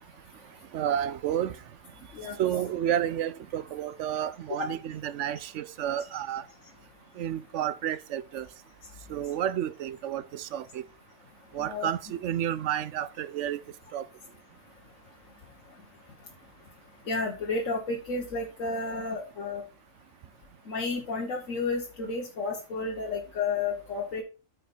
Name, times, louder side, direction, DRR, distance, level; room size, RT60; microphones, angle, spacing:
voice 1, 0.7-1.6 2.4-6.4 7.2-8.5 9.1-10.8 11.5-13.6 13.9-14.0, right 10 dB, 70° right, 0.8 m, -30 dB
voice 2, 11.6-11.9 17.0-19.6 20.6-24.2, left 3 dB, 75° left, 1.6 m, -32 dB
9.2 x 5.5 x 4.3 m
omnidirectional pair, 1.4 m